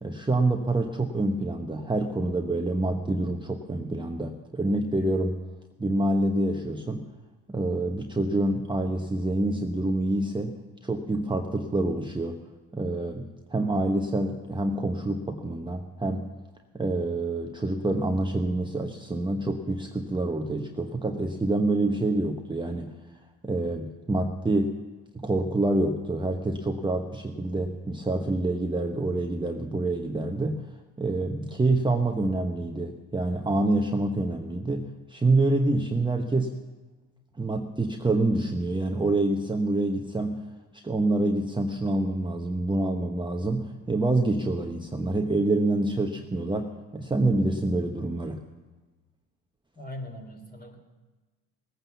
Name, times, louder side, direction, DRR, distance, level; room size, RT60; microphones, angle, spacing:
voice 1, 0.0-5.4 5.8-7.1 7.5-12.4 12.7-16.3 16.7-22.9 23.4-24.8 25.1-30.6 31.0-36.5 37.4-40.4 40.8-48.4, right 2 dB, 10° right, 3 dB, 1.1 m, -27 dB
voice 2, 49.8-50.8, left 1 dB, 25° left, 3 dB, 3.6 m, -40 dB
19.0 x 9.0 x 7.1 m, 1.2 s
supercardioid pair, 75°, 40 cm